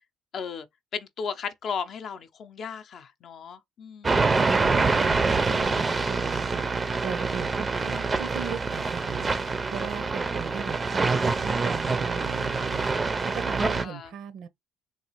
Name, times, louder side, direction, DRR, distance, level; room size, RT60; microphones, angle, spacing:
voice 1, 0.3-0.7 0.9-4.3 13.8-14.1, left 6 dB, 50° left, 0.5 m, -35 dB
sound 1, 4.0-13.9, right 4 dB, 20° right, 0.4 m, -26 dB
voice 2, 4.4-6.6 7.0-12.9 13.2-14.5, right 7 dB, 65° right, 0.6 m, -38 dB
3.4 x 2.4 x 3.0 m
cardioid pair, 115°, 0 cm